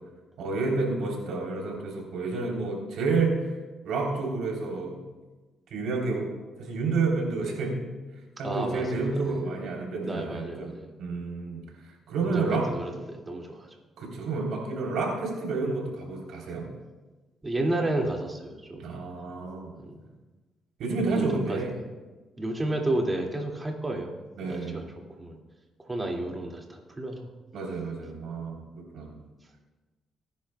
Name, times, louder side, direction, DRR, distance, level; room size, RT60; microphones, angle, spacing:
voice 1, 0.4-3.5 3.8-5.0 5.7-6.3 6.6-7.8 8.4-11.6 12.1-12.7 14.0-16.7 18.8-19.7 20.8-21.7 24.4-24.8 27.5-29.2, right 3 dB, 80° right, -1 dB, 3.4 m, -30 dB
voice 2, 8.4-9.5 10.0-10.9 12.2-13.7 17.4-18.9 19.8-20.0 21.1-21.6 22.4-24.8 25.2-25.4 25.8-27.3, right 1 dB, 20° right, 1 dB, 2.2 m, -32 dB
19.5 x 10.5 x 2.3 m, 1.2 s
cardioid pair, 90°, 0 cm